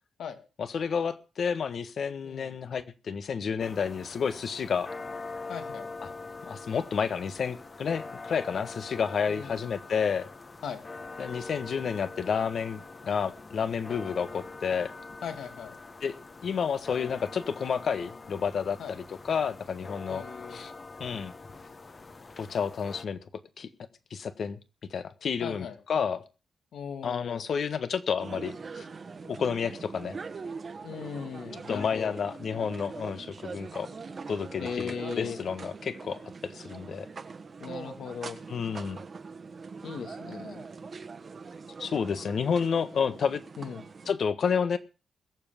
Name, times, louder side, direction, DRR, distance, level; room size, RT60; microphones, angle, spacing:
voice 1, 0.6-4.9 6.4-10.3 11.2-14.9 16.0-16.2 16.4-20.2 20.5-20.7 21.0-21.3 22.4-23.2 23.6-23.7 24.1-24.6 24.9-26.2 27.0-28.8 29.3-30.2 31.7-33.9 34.3-37.1 38.5-39.0 41.8-43.4 44.1-44.8, left 6 dB, 55° left, 11 dB, 1.5 m, -30 dB
voice 2, 2.2-2.5 5.5-5.9 9.3-9.6 10.6-10.8 15.2-15.8 18.8-19.0 20.1-20.6 25.4-25.8 26.7-27.4 30.8-32.2 34.6-35.4 37.6-38.4 39.8-40.7 43.6-43.8, left 7 dB, 75° left, 5 dB, 2.7 m, -38 dB
sound 1, 3.6-23.1, left 3 dB, 30° left, 1.3 m, -44 dB
sound 2, 28.2-44.1, right 4 dB, 40° right, 1.5 m, -42 dB
22.0 x 7.4 x 5.2 m, 0.34 s
cardioid pair, 115°, 0 cm